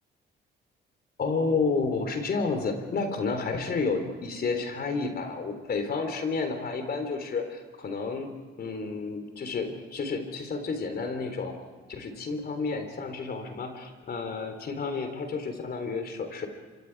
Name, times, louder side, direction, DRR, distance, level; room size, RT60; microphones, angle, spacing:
voice 1, 1.2-8.3 8.6-11.5 11.9-16.5, left 4 dB, 50° left, 6 dB, 3.7 m, -30 dB
26.5 x 25.0 x 4.8 m, 1.4 s
cardioid pair, 90°, 20 cm